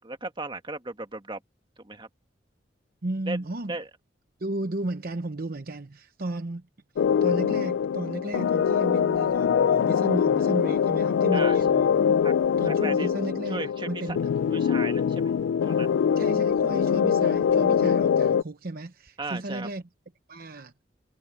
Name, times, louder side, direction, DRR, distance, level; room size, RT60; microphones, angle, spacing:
voice 1, 0.0-1.4 1.8-2.1 3.3-3.4 3.7-3.9 11.3-11.6 12.2-12.3 12.7-13.1 13.5-14.2 14.5-15.3 15.6-15.9 19.2-19.7, right 3 dB, 25° right, 1.9 m, -36 dB
voice 2, 3.0-3.8 4.4-6.6 7.2-11.9 12.6-14.3 16.2-19.8 20.3-20.7, right 2 dB, 50° right, 0.9 m, -34 dB
sound 1, 7.0-18.4, left 7 dB, 80° left, 0.3 m, -23 dB
head